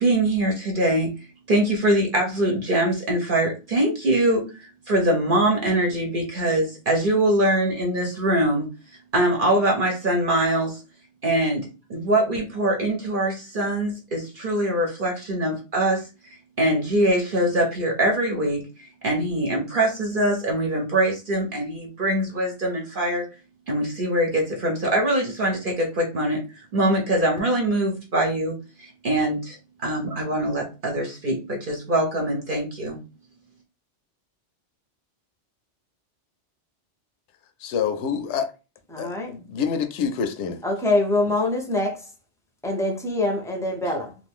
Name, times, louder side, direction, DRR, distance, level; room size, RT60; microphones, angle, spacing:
voice 1, 0.0-1.1 1.5-8.7 9.1-10.8 11.2-23.2 23.7-33.0, right 1 dB, 50° right, 0.8 m, -23 dB
voice 2, 37.6-38.5 39.0-40.6, left 7 dB, 75° left, 0.8 m, -27 dB
voice 3, 38.9-39.3 40.6-42.1 42.6-44.2, left 2 dB, 5° left, 0.4 m, -24 dB
2.6 x 2.5 x 3.5 m
omnidirectional pair, 1.2 m